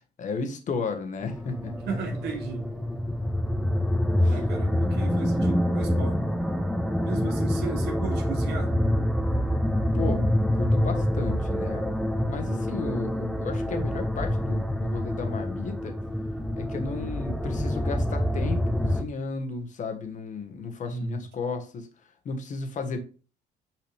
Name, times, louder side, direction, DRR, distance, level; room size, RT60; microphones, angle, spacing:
voice 1, 0.2-1.7 4.2-4.4 9.9-16.0 16.6-21.9 22.2-23.0, left 4 dB, 45° left, 1.4 m, -34 dB
sound 1, 1.2-19.0, equal, ahead, 0.6 m, -26 dB
voice 2, 1.7-2.7 4.3-6.2 7.0-8.7 20.8-21.2, right 4 dB, 80° right, 1.7 m, -35 dB
5.8 x 4.9 x 3.3 m
cardioid pair, 110°, 17 cm